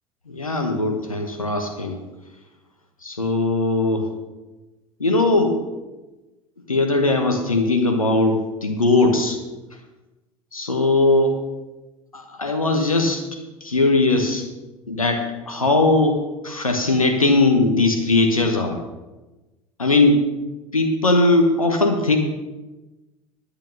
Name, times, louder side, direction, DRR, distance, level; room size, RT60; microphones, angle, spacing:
voice 1, 0.3-2.0 3.0-4.0 5.0-5.6 6.7-9.4 10.5-11.4 12.1-13.2 13.6-14.4 14.9-18.8 19.8-20.2 20.7-22.2, left 2 dB, 90° left, 4 dB, 1.1 m, -19 dB
10.5 x 9.8 x 5.2 m, 1.1 s
figure-of-eight pair, 70°, 17 cm